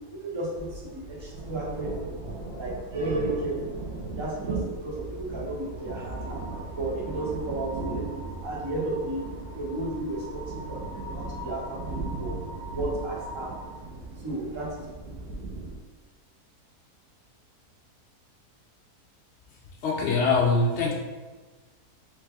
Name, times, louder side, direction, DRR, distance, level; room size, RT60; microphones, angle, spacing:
voice 1, 0.1-2.3 2.6-3.8 4.1-8.1 8.4-9.3 9.5-12.3 12.7-13.7 14.1-14.8, right 2 dB, 30° right, -5 dB, 0.5 m, -33 dB
sound 1, 0.5-15.8, right 3 dB, 80° right, 1.3 m, -37 dB
sound 2, 5.8-13.8, equal, 35° left, 0.8 m, -44 dB
voice 2, 19.8-20.9, left 3 dB, 75° left, -1 dB, 0.6 m, -23 dB
3.3 x 3.2 x 3.4 m, 1.3 s
omnidirectional pair, 1.7 m